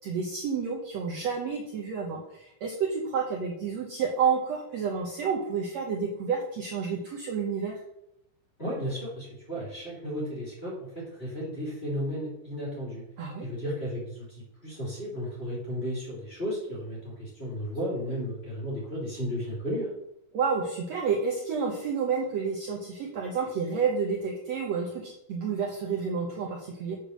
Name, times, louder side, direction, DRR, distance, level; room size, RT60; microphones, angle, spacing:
voice 1, 0.0-7.8 13.2-13.5 20.3-27.0, right 5 dB, 80° right, 0 dB, 1.5 m, -30 dB
voice 2, 8.6-13.0 13.4-19.9, equal, 15° left, -5 dB, 2.8 m, -34 dB
8.3 x 5.0 x 6.5 m, 0.82 s
omnidirectional pair, 4.6 m